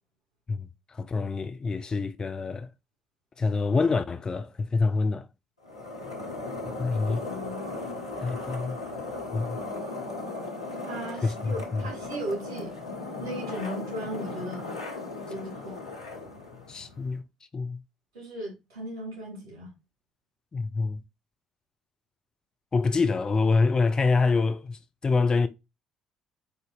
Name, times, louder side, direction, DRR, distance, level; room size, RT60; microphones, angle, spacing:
voice 1, 0.5-2.7 3.4-5.3 6.8-7.3 8.2-8.8 9.3-9.6 11.2-11.8 16.7-17.2 17.5-17.8 20.5-21.0 22.7-25.5, left 4 dB, 30° left, 0.5 m, -26 dB
sound 1, 5.6-17.2, left 2 dB, 85° left, 0.8 m, -37 dB
voice 2, 7.1-7.7 10.9-12.7 13.2-14.6 15.3-15.8 18.1-19.7, right 1 dB, 70° right, 2.3 m, -37 dB
8.0 x 2.7 x 2.4 m
figure-of-eight pair, 50°, 3 cm